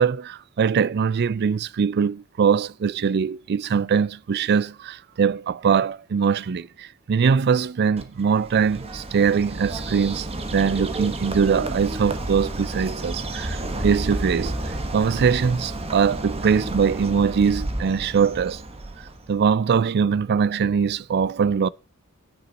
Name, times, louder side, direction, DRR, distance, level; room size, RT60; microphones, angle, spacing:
voice 1, 0.0-10.3 10.5-13.6 13.8-18.6 19.3-21.7, right 6 dB, 50° right, 0.4 m, -22 dB
Bird, 8.0-19.4, right 1 dB, 30° right, 1.3 m, -31 dB
9.6 x 8.9 x 4.0 m
head